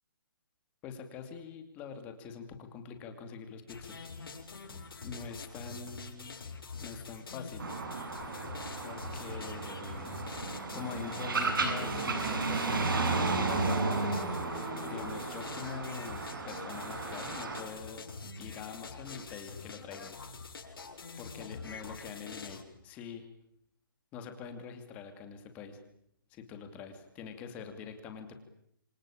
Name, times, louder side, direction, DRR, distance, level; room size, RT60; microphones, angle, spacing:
voice 1, 0.8-4.0 4.5-6.4 6.8-7.7 8.5-10.2 10.7-14.2 14.5-18.0 18.4-20.2 21.2-23.3 24.1-25.8 26.3-28.3, left 6 dB, 10° left, 6 dB, 2.6 m, -45 dB
sound 1, 3.7-22.6, left 4 dB, 85° left, 7.3 m, -45 dB
sound 2, 7.6-17.6, right 3 dB, 65° right, 7.9 m, -33 dB
28.0 x 24.0 x 8.7 m, 0.72 s
hypercardioid pair, 175°, 12 cm